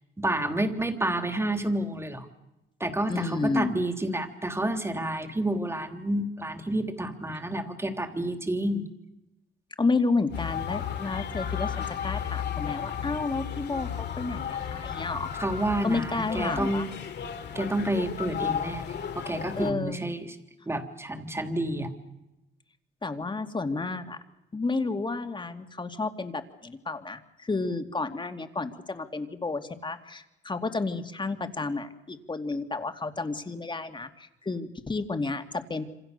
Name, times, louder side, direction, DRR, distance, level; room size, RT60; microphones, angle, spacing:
voice 1, 0.2-2.3 2.8-8.9 15.4-16.9 17.6-20.2 20.7-21.9, right 1 dB, 15° right, 6 dB, 3.3 m, -29 dB
voice 2, 3.1-3.7 9.8-15.3 15.8-16.9 19.5-20.2 23.0-24.2 24.5-35.8, left 3 dB, 25° left, 7 dB, 2.5 m, -31 dB
sound 1, 10.3-19.7, left 8 dB, 60° left, 2.9 m, -34 dB
27.0 x 26.0 x 6.8 m, 0.95 s
cardioid pair, 90°, 20 cm